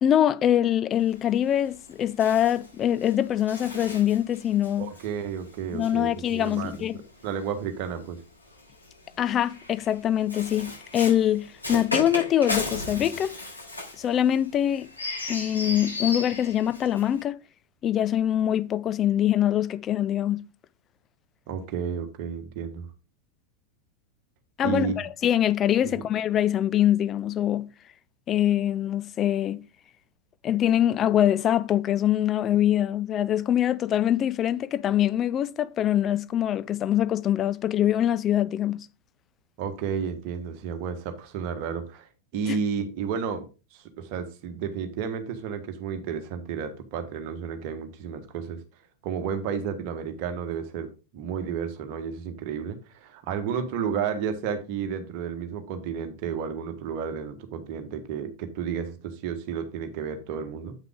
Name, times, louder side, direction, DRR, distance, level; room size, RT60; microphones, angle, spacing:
voice 1, 0.0-4.9 5.7-7.0 9.2-13.3 14.0-14.9 15.3-17.4 17.8-20.4 24.6-27.7 28.3-29.6 30.4-38.9 42.5-42.6, left 11 dB, 30° left, 0.4 m, -24 dB
Bird, 1.0-7.5 8.4-17.2, left 2 dB, 80° left, 3.7 m, -36 dB
voice 2, 4.8-8.2 21.5-22.9 24.6-25.1 25.8-26.0 39.6-43.5 43.7-48.6 49.0-60.8, right 7 dB, 45° right, 1.4 m, -32 dB
8.6 x 5.7 x 3.6 m
figure-of-eight pair, 90°, 0 cm